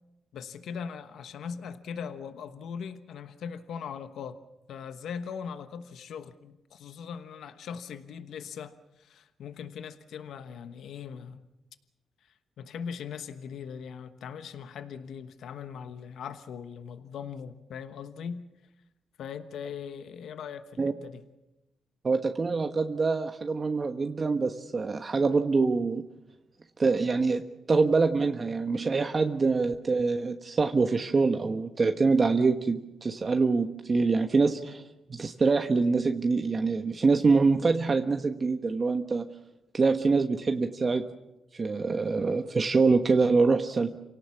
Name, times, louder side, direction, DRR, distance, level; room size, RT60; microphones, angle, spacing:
voice 1, 0.3-4.4 4.7-11.4 12.2-18.5 19.2-21.2, left 7 dB, 80° left, 10 dB, 1.1 m, -40 dB
voice 2, 22.0-26.0 26.8-27.4 27.7-34.8 35.1-39.3 39.7-41.0 41.5-43.9, right 4 dB, 40° right, 6 dB, 1.2 m, -25 dB
27.5 x 18.0 x 7.2 m, 0.98 s
cardioid pair, 80°, 0 cm